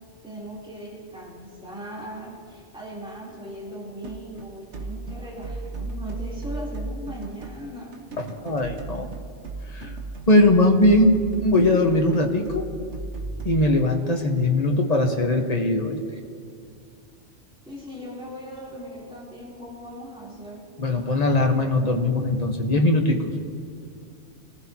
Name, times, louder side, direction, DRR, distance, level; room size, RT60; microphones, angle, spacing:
voice 1, 0.2-7.9 17.7-20.6, equal, 5° right, -7 dB, 3.4 m, -38 dB
sound 1, 4.0-13.6, right 3 dB, 70° right, 1.4 m, -36 dB
voice 2, 8.2-9.1 9.7-9.9 10.3-12.7 13.4-16.0 20.8-23.3, left 1 dB, 35° left, 3 dB, 1.3 m, -20 dB
26.5 x 14.5 x 2.9 m, 2.3 s
omnidirectional pair, 1.2 m